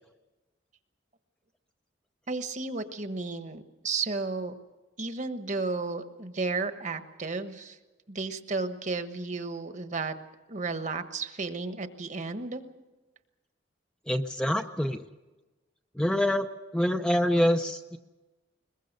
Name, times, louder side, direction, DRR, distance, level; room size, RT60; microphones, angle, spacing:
voice 1, 2.3-4.5 5.0-7.8 8.1-10.1 10.5-12.6, right 3 dB, 40° right, 9 dB, 1.2 m, -33 dB
voice 2, 14.1-15.0 16.0-16.5 16.7-18.0, left 1 dB, 5° left, 5 dB, 0.6 m, -25 dB
22.0 x 21.0 x 6.6 m, 1.1 s
head